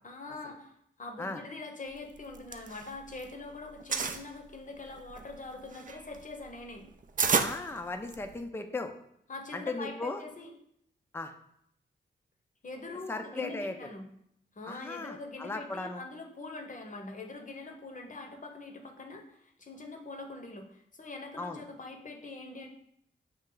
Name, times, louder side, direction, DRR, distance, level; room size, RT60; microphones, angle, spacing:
voice 1, 0.0-0.7 1.0-6.9 9.3-10.5 12.6-14.1 14.5-22.7, left 3 dB, 40° left, 3 dB, 0.8 m, -43 dB
sound 1, 2.2-3.3 3.6-4.2 4.9-8.4, right 5 dB, 40° right, 0.4 m, -31 dB
voice 2, 7.4-8.9 9.5-10.2 11.1-11.3 13.1-13.8 14.7-16.0 21.4-21.6, left 3 dB, 10° left, 5 dB, 0.5 m, -37 dB
5.3 x 2.4 x 3.8 m, 0.72 s
cardioid pair, 50°, 20 cm